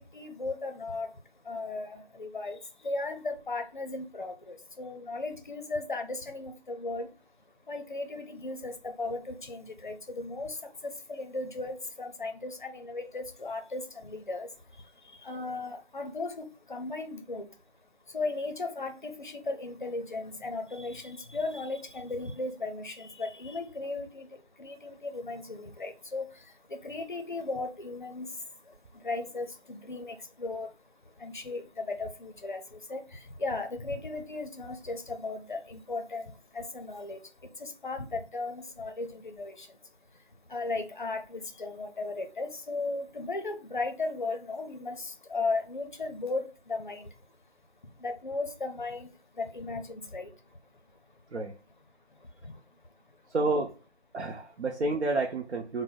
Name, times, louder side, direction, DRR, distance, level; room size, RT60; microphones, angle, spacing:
voice 1, 0.1-1.1 1.5-2.6 2.8-7.1 7.7-10.6 10.8-14.5 15.2-17.5 18.1-26.3 26.7-28.3 29.0-30.7 31.2-32.6 32.9-37.2 37.6-39.7 40.5-47.1 48.0-49.1 49.4-50.3 52.4-52.5, left 3 dB, 45° left, 0.5 m, -36 dB
voice 2, 53.3-53.8 54.1-55.8, right 2 dB, 75° right, 0.6 m, -29 dB
2.5 x 2.0 x 3.7 m
figure-of-eight pair, 165°, 33 cm